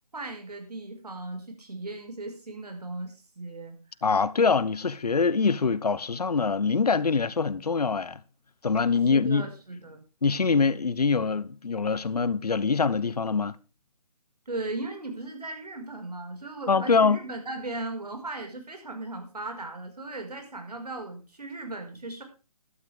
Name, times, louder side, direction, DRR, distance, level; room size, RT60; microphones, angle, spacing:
voice 1, 0.1-3.8 9.1-10.0 14.5-22.2, right 2 dB, 90° right, 5.4 m, -37 dB
voice 2, 4.0-8.2 8.6-9.5 10.2-13.6 16.7-17.2, left 5 dB, 85° left, 1.1 m, -24 dB
14.5 x 12.5 x 3.6 m
hypercardioid pair, 155°, 20 cm